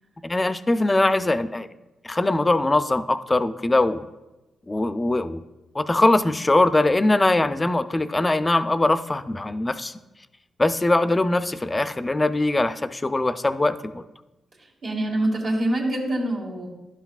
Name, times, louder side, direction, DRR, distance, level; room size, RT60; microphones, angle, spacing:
voice 1, 0.2-1.7 2.0-4.1 4.7-5.4 5.7-9.9 10.6-14.0, left 2 dB, 20° left, 12 dB, 0.4 m, -21 dB
voice 2, 14.8-16.7, right 1 dB, 65° right, -3 dB, 1.9 m, -25 dB
11.5 x 5.8 x 2.4 m, 1.0 s
cardioid pair, 75°, 0 cm